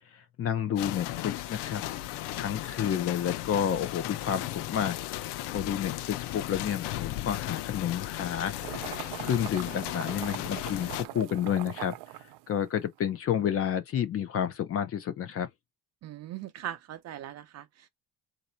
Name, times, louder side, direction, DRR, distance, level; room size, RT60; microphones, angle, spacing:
voice 1, 0.4-1.8 2.3-4.9 5.5-8.9 9.2-11.9 12.5-15.5, left 9 dB, 35° left, 0.7 m, -30 dB
sound 1, 0.8-11.1, left 15 dB, 90° left, 0.6 m, -36 dB
sound 2, 8.6-13.0, right 17 dB, 80° right, 0.6 m, -41 dB
voice 2, 16.0-17.9, right 11 dB, 40° right, 0.6 m, -40 dB
3.9 x 2.8 x 4.3 m
cardioid pair, 175°, 40 cm